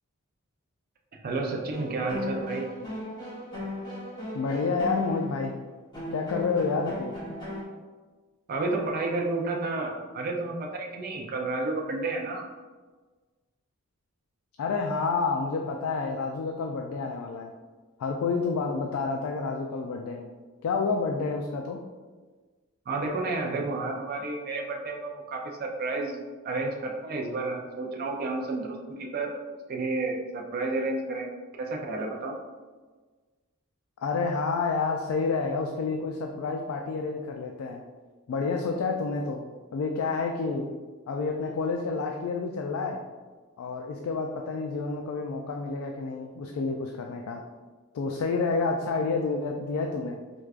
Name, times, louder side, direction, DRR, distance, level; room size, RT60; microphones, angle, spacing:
voice 1, 1.1-2.7 8.5-12.4 22.9-29.3 29.7-31.3 31.6-32.4, right 3 dB, 45° right, 0 dB, 0.4 m, -31 dB
sound 1, 1.7-7.6, left 2 dB, 20° left, 0.9 m, -36 dB
voice 2, 4.3-5.5 6.1-7.2 14.6-17.5 18.0-20.3 20.6-21.8 34.0-37.8 38.3-39.4 39.7-40.7 41.1-43.0 43.6-47.4 47.9-50.2, left 4 dB, 85° left, 2 dB, 0.3 m, -29 dB
4.6 x 2.2 x 2.4 m, 1.4 s
head